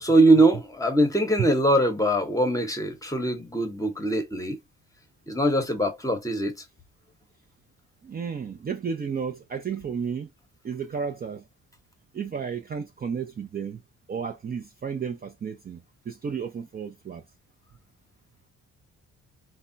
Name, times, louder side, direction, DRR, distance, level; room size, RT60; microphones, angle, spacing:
voice 1, 0.0-4.6 5.3-6.6, right 1 dB, 10° left, 0.9 m, -22 dB
voice 2, 8.0-10.3 10.6-11.4 12.1-13.8 14.1-17.2, right 6 dB, 30° right, 0.5 m, -33 dB
3.4 x 2.2 x 2.6 m
cardioid pair, 90°, 30 cm